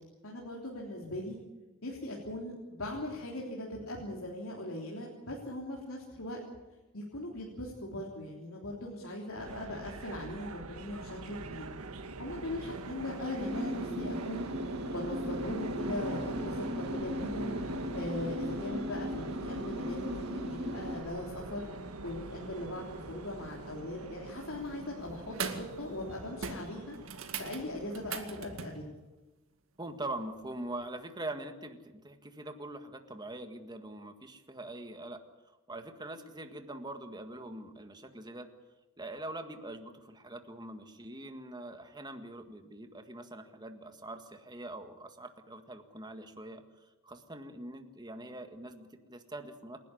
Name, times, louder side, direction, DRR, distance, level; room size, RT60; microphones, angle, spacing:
voice 1, 0.2-1.4 1.8-6.4 6.9-11.7 12.2-14.4 14.9-21.7 22.0-27.0 27.4-29.0, left 1 dB, 70° left, -2 dB, 3.5 m, -40 dB
sound 1, 9.4-28.3, right 2 dB, 85° right, 1.5 m, -42 dB
sound 2, 13.4-21.0, left 1 dB, 50° right, 3.1 m, -38 dB
sound 3, 24.5-24.9 25.3-25.7 26.0-26.1 26.4-28.8 30.8-30.9, right 5 dB, 65° right, 2.1 m, -40 dB
voice 2, 29.8-35.2 35.5-38.5 39.0-49.8, right 2 dB, 20° right, 7 dB, 1.7 m, -43 dB
28.0 x 11.5 x 10.0 m, 1.1 s
head